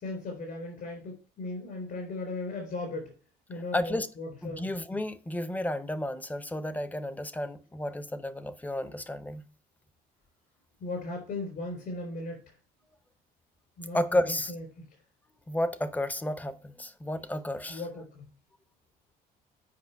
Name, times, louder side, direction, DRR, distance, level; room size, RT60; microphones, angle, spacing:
voice 1, 0.0-3.1 3.5-4.7 10.8-12.5 13.8-14.9 17.7-18.2, left 2 dB, 60° left, 3.7 m, -37 dB
voice 2, 3.7-4.1 4.4-9.4 13.9-14.5 15.5-17.8, left 1 dB, 10° left, 0.7 m, -32 dB
8.5 x 5.1 x 4.5 m
cardioid pair, 110°, 17 cm